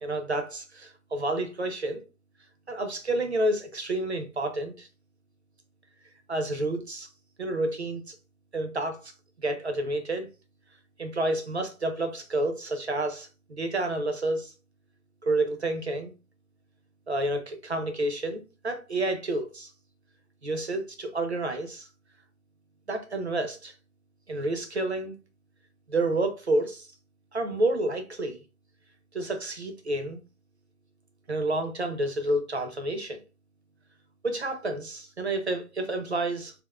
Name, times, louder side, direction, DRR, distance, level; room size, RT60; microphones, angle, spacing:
voice 1, 0.0-2.0 2.7-4.9 6.3-7.1 7.4-8.1 8.5-9.1 9.4-10.3 11.0-14.5 15.2-16.1 17.1-19.7 20.4-21.9 22.9-23.7 24.3-25.2 25.9-26.9 27.3-28.4 29.1-30.2 31.3-33.2 34.2-36.5, right 2 dB, 50° right, 0.6 m, -29 dB
3.6 x 2.4 x 2.3 m
hypercardioid pair, 175°, 45 cm